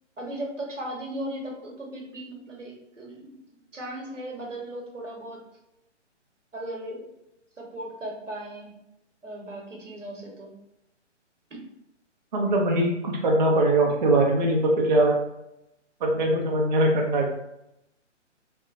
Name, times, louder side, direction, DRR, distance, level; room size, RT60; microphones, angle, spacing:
voice 1, 0.2-3.4 3.7-5.4 6.5-7.1 7.6-8.8 9.2-10.6 11.5-11.6, right 1 dB, 90° right, -1 dB, 1.0 m, -37 dB
voice 2, 12.3-15.2 16.0-17.3, right 1 dB, 40° right, 0 dB, 0.4 m, -21 dB
2.6 x 2.0 x 2.4 m, 0.86 s
figure-of-eight pair, 140°, 36 cm